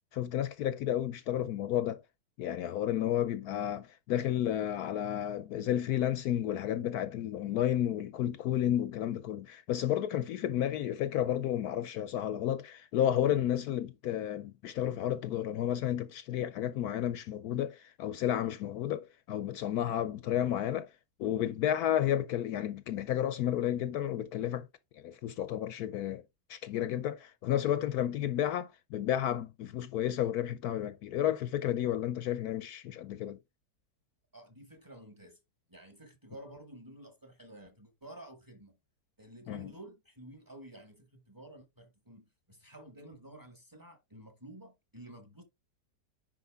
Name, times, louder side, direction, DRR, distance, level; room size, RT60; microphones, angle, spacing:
voice 1, 0.1-2.0 2.4-20.9 21.2-24.7 24.9-26.2 26.5-33.4 39.5-39.7, left 11 dB, 70° left, 1.0 m, -32 dB
voice 2, 34.3-35.4 35.7-38.8 39.2-45.4, right 1 dB, 15° right, 1.4 m, -51 dB
10.0 x 4.6 x 3.5 m
omnidirectional pair, 1.8 m